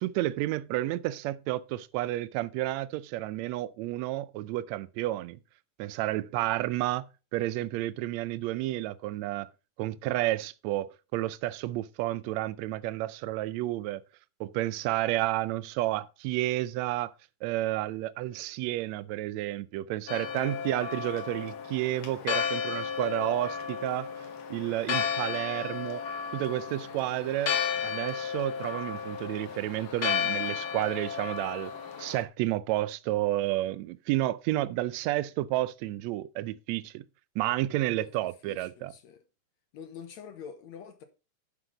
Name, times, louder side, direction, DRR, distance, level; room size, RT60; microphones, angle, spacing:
voice 1, 0.0-5.4 5.8-7.1 7.3-9.5 9.8-14.0 14.4-17.1 17.4-24.1 24.5-26.0 26.3-27.6 27.8-31.7 32.0-37.0 37.4-38.9, right 16 dB, 75° right, 1.7 m, -31 dB
Church bell, 20.1-32.2, left 7 dB, 55° left, 1.7 m, -33 dB
voice 2, 38.4-39.2 39.7-41.0, left 7 dB, 70° left, 2.2 m, -45 dB
9.9 x 5.9 x 5.0 m
omnidirectional pair, 3.5 m